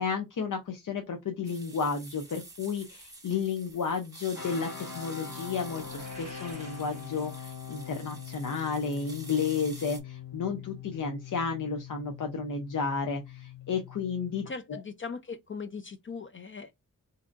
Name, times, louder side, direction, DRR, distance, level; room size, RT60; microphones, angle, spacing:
voice 1, 0.0-14.8, left 5 dB, 70° left, 0.7 m, -32 dB
sound 1, 1.4-10.0, right 2 dB, 10° right, 1.2 m, -49 dB
sound 2, 4.3-14.5, left 8 dB, 85° left, 1.6 m, -43 dB
sound 3, 5.6-7.8, equal, 20° left, 1.8 m, -50 dB
voice 2, 14.5-16.7, left 5 dB, 40° left, 0.5 m, -39 dB
4.2 x 2.7 x 2.5 m
cardioid pair, 65°, 33 cm